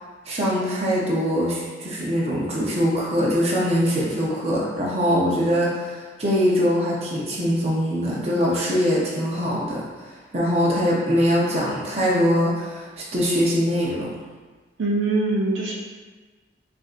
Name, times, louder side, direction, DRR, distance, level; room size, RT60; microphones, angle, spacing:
voice 1, 0.3-14.1, equal, 35° right, -5 dB, 0.7 m, -22 dB
voice 2, 14.8-15.7, right 2 dB, 85° right, -3 dB, 0.6 m, -22 dB
5.2 x 2.6 x 2.5 m, 1.3 s
head